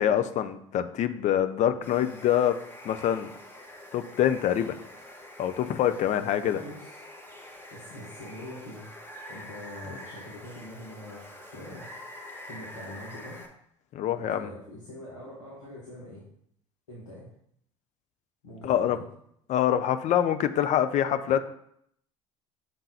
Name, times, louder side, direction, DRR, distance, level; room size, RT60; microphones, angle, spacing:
voice 1, 0.0-2.5 2.8-3.3 3.9-4.8 5.4-6.6 13.9-14.5 18.6-19.0 19.5-21.5, left 10 dB, 50° left, 10 dB, 0.6 m, -25 dB
Water, 1.8-13.5, left 1 dB, 15° left, 1.4 m, -46 dB
voice 2, 6.5-7.0 7.7-8.8 9.3-13.4 14.1-16.2 16.9-17.3 18.4-19.0, left 1 dB, 85° left, -5 dB, 1.7 m, -44 dB
6.8 x 3.8 x 4.3 m, 0.70 s
hypercardioid pair, 65°, 16 cm